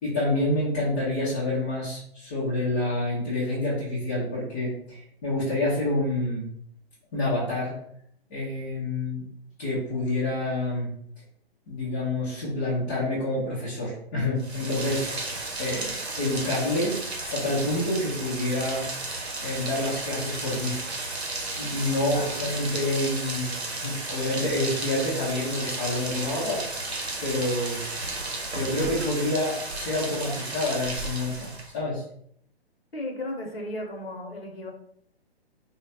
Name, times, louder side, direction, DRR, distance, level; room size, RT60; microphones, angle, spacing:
voice 1, 0.0-6.5 7.1-7.7 8.3-9.2 9.6-10.9 11.7-15.1 15.6-18.9 19.4-20.8 21.6-23.5 23.8-26.9 27.2-27.8 28.5-32.0, left 1 dB, 15° left, -10 dB, 0.4 m, -28 dB
Rain, 14.4-31.8, right 2 dB, 85° right, 0.8 m, -33 dB
voice 2, 22.1-22.6 32.9-34.7, left 1 dB, 70° left, 1 dB, 0.8 m, -35 dB
3.1 x 2.2 x 2.6 m, 0.67 s
figure-of-eight pair, 130°, 31 cm